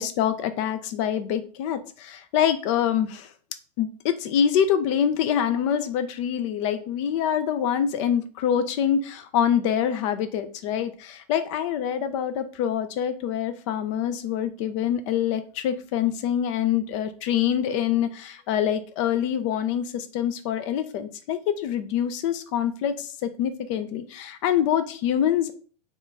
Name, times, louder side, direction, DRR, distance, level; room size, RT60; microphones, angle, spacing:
voice 1, 0.0-3.3 3.8-25.5, left 9 dB, 50° left, 11 dB, 0.4 m, -25 dB
2.9 x 2.4 x 3.8 m, 0.41 s
hypercardioid pair, 105°, 21 cm